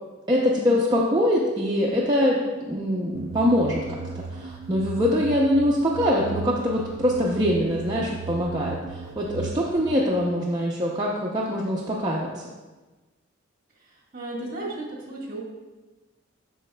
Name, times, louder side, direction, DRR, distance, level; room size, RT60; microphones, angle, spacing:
voice 1, 0.3-2.4 2.7-12.5, equal, 20° right, -4 dB, 0.5 m, -23 dB
sound 1, 3.1-10.0, right 4 dB, 80° right, 0.4 m, -36 dB
voice 2, 13.8-15.4, right 2 dB, 45° right, -3 dB, 1.4 m, -35 dB
12.0 x 4.0 x 2.2 m, 1.2 s
head